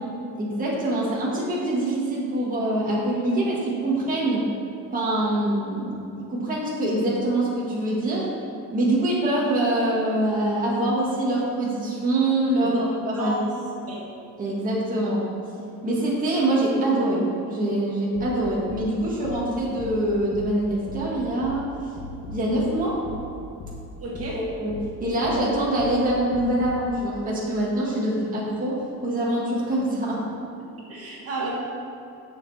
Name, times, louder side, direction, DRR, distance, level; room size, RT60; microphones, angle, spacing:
voice 1, 0.3-4.5 4.9-8.3 8.7-13.4 14.4-15.2 15.8-21.7 22.3-23.0 24.3-30.3 31.4-31.5, right 1 dB, 25° right, -6 dB, 1.8 m, -24 dB
voice 2, 13.1-13.5 13.9-14.0 24.0-24.4 30.9-31.5, right 2 dB, 45° right, -5 dB, 1.7 m, -31 dB
sound 1, 18.1-26.9, left 2 dB, 75° left, 1.6 m, -39 dB
10.5 x 7.0 x 4.3 m, 2.7 s
cardioid pair, 170°, 33 cm